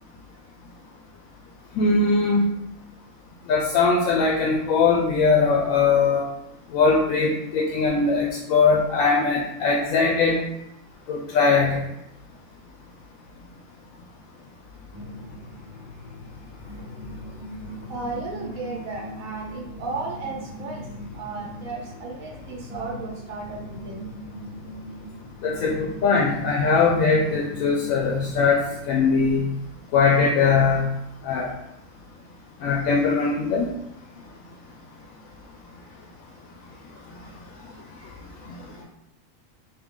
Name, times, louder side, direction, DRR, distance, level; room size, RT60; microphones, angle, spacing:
voice 1, 1.7-2.5 3.5-6.2 6.7-10.4 11.1-11.8 25.4-29.5 29.9-30.9 31.2-31.5 32.6-33.7, left 4 dB, 85° left, -1 dB, 1.0 m, -21 dB
sound 1, 14.9-29.0, equal, 25° right, 0.5 m, -40 dB
voice 2, 17.9-20.8 21.1-24.1, right 3 dB, 85° right, -2 dB, 1.1 m, -34 dB
3.6 x 2.7 x 3.6 m, 0.82 s
omnidirectional pair, 1.4 m